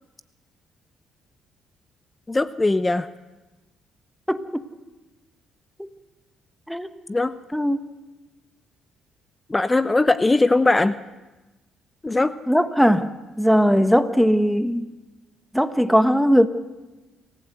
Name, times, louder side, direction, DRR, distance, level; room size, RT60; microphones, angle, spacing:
voice 1, 2.3-3.1 7.1-7.3 9.5-10.9 12.0-12.3, left 2 dB, 20° left, 13 dB, 0.8 m, -20 dB
voice 2, 4.3-4.6 5.8-5.9 6.7-6.9 7.5-7.8 12.1-13.1 13.4-14.8 15.5-16.5, equal, ahead, 10 dB, 1.4 m, -19 dB
28.0 x 15.5 x 8.0 m, 1.1 s
supercardioid pair, 75°, 0 cm